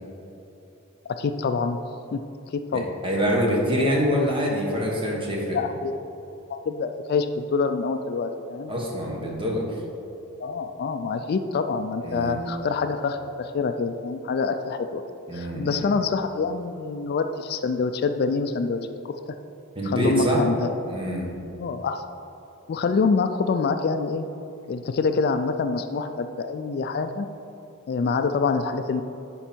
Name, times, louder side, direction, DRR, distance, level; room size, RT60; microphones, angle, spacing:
voice 1, 1.2-1.8 2.1-2.2 2.5-2.9 5.5-5.9 6.5-8.7 10.4-15.0 15.3-18.8 19.0-19.1 19.8-20.7 21.6-22.1 22.7-24.2 24.7-27.3 27.9-29.0, left 4 dB, 50° left, 8 dB, 0.3 m, -26 dB
voice 2, 2.7-5.6 8.7-9.8 12.0-12.4 15.3-15.9 19.7-20.4 20.8-21.3, equal, 25° right, -2 dB, 1.4 m, -25 dB
11.0 x 4.5 x 4.4 m, 2.9 s
head